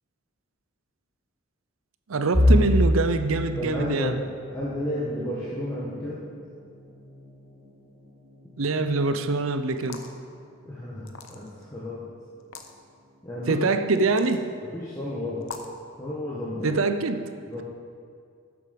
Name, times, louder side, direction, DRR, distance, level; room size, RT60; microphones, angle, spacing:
voice 1, 2.1-4.1 8.6-10.0 13.5-14.5 16.6-17.3, right 3 dB, 85° right, 9 dB, 0.7 m, -24 dB
sound 1, 2.3-14.2 14.6-14.9 15.2-15.4 16.3-16.7, left 1 dB, 15° right, 2.2 m, -30 dB
voice 2, 3.6-4.2 4.5-6.2 10.6-12.0 13.2-13.6 14.6-15.4 16.0-16.8 17.5-17.6, left 1 dB, 15° left, -8 dB, 1.4 m, -32 dB
sound 2, 9.7-10.2 11.0-11.6 12.4-12.7 14.0-14.4 15.4-15.8, left 4 dB, 75° left, 0.9 m, -41 dB
12.5 x 8.0 x 5.3 m, 2.2 s
head